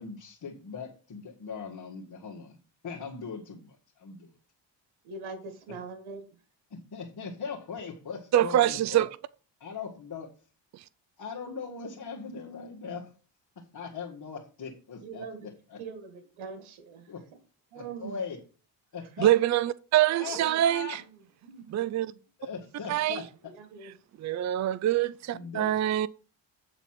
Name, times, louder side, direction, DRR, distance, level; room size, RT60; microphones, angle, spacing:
voice 1, 0.0-2.6 2.8-4.4 6.7-9.0 9.6-10.3 11.2-13.1 13.6-15.8 17.1-17.2 17.7-18.4 18.9-19.3 20.2-21.0 22.4-23.3 25.3-25.9, left 5 dB, 50° left, 1.9 m, -40 dB
voice 2, 5.0-6.2 15.0-15.5 15.8-17.1 17.7-18.2 20.2-20.6 21.0-21.1 21.4-22.2 23.1-23.2 23.4-23.9, right 5 dB, 85° right, 1.8 m, -43 dB
voice 3, 8.3-9.1 19.2-21.0 21.7-22.1 22.9-23.2 24.2-26.1, right 12 dB, 40° right, 0.4 m, -25 dB
9.0 x 4.0 x 6.0 m
cardioid pair, 75°, 48 cm